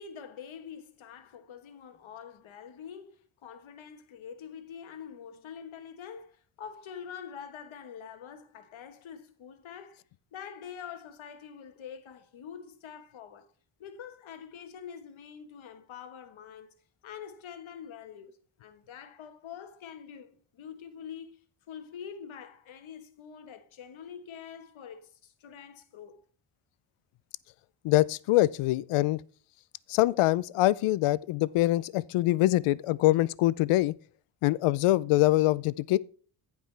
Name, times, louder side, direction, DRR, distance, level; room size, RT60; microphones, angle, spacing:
voice 1, 0.0-10.0 10.3-13.5 13.8-16.7 17.0-26.2, left 7 dB, 70° left, 1.3 m, -45 dB
voice 2, 27.8-29.2 29.9-33.9 34.4-36.0, left 17 dB, 85° left, 0.6 m, -24 dB
15.0 x 5.3 x 3.3 m
cardioid pair, 75°, 50 cm